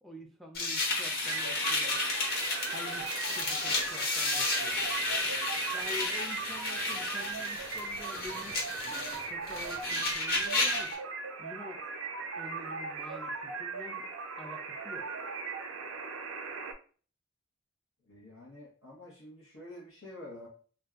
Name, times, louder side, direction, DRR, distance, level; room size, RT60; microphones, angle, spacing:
voice 1, 0.0-2.0 2.7-4.8 5.7-10.9 11.4-11.8 12.4-14.1 14.4-15.1, left 1 dB, ahead, 1 dB, 0.4 m, -47 dB
sound 1, 0.5-10.9, left 3 dB, 50° left, 1.1 m, -32 dB
sound 2, 1.3-16.7, right 5 dB, 90° right, 0.5 m, -38 dB
voice 2, 18.1-20.5, left 1 dB, 85° left, -6 dB, 1.0 m, -48 dB
2.6 x 2.2 x 3.4 m, 0.40 s
head